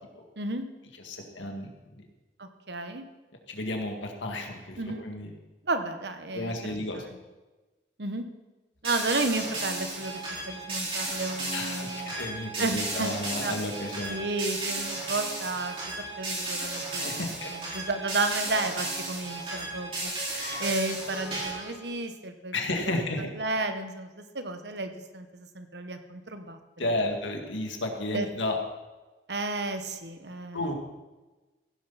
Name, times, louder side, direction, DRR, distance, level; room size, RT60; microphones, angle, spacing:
voice 1, 0.4-0.7 2.4-3.0 4.8-5.2 5.7-7.2 8.0-8.3 8.8-10.2 10.5-12.1 12.6-13.5 14.1-15.7 16.2-22.6 22.9-26.9 28.1-28.3 29.3-30.7, right 2 dB, 65° right, 7 dB, 1.2 m, -33 dB
voice 2, 1.0-1.7 3.5-5.3 6.3-7.1 11.5-14.3 16.9-17.5 20.3-20.7 22.5-23.3 26.8-28.6 30.5-30.7, left 2 dB, 90° left, 3 dB, 2.1 m, -32 dB
sound 1, 8.8-21.7, right 2 dB, 30° right, 5.0 m, -34 dB
16.0 x 11.0 x 4.2 m, 1.2 s
head